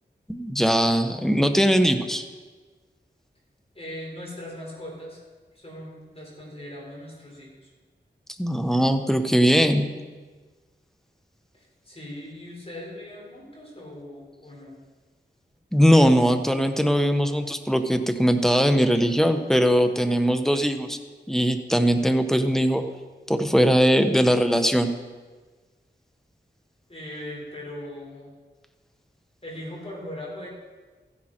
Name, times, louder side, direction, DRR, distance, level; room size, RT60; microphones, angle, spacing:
voice 1, 0.3-2.2 8.4-9.9 15.7-21.0 21.3-22.8 23.3-24.9, equal, ahead, 7 dB, 1.2 m, -20 dB
voice 2, 3.7-5.2 5.5-7.7 11.5-14.8 26.9-28.3 29.4-30.5, left 1 dB, 30° left, -3 dB, 5.1 m, -39 dB
15.5 x 11.0 x 4.5 m, 1.4 s
cardioid pair, 50°, 19 cm